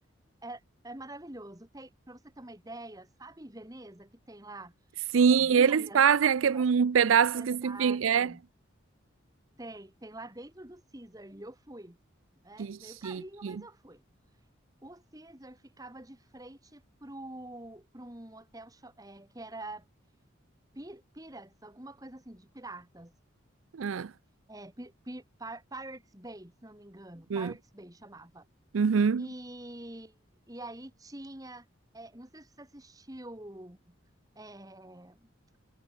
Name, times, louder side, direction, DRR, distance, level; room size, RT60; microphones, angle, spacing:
voice 1, 0.4-4.7 5.2-6.0 6.4-6.7 7.3-8.4 9.6-12.0 12.4-14.0 14.8-19.9 20.7-23.1 24.5-28.5 29.2-30.2 30.5-31.7 31.9-33.9 34.4-35.3, right 1 dB, 20° right, 2.0 m, -46 dB
voice 2, 5.1-8.3 12.6-12.8 13.0-13.5 23.8-24.1 27.3-27.5 28.7-29.2, right 7 dB, 80° right, 0.4 m, -24 dB
head